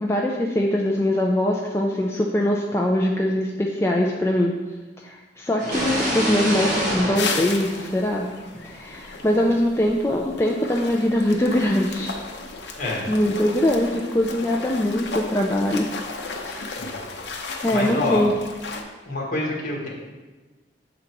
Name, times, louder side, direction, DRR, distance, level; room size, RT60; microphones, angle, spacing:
voice 1, 0.0-4.6 5.0-8.3 8.6-12.1 12.9-15.9 16.4-16.7 17.6-18.3, left 1 dB, 15° left, -1 dB, 0.4 m, -22 dB
sound 1, 5.6-8.4, equal, 45° right, 1.7 m, -27 dB
sound 2, 7.1-18.8, left 4 dB, 75° left, 0.7 m, -34 dB
voice 2, 12.8-13.1 16.8-17.0 17.7-18.3 19.0-19.9, left 2 dB, 50° left, -3 dB, 1.5 m, -26 dB
6.9 x 3.9 x 4.6 m, 1.2 s
head